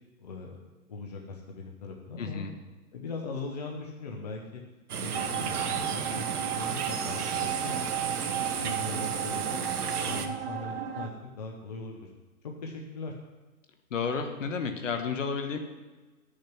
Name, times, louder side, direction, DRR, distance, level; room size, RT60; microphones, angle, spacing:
voice 1, 0.2-0.6 0.9-2.4 2.9-4.6 5.0-7.8 8.1-9.4 10.0-12.1 12.4-13.1, left 3 dB, 30° left, 0 dB, 0.7 m, -40 dB
voice 2, 2.2-2.5 13.9-15.6, left 5 dB, 55° left, 6 dB, 1.3 m, -31 dB
sound 1, 4.9-10.3, right 6 dB, 80° right, 1.1 m, -33 dB
sound 2, 5.1-11.1, right 9 dB, 40° right, 0.7 m, -34 dB
10.5 x 6.4 x 5.9 m, 1.2 s
hypercardioid pair, 165°, 45 cm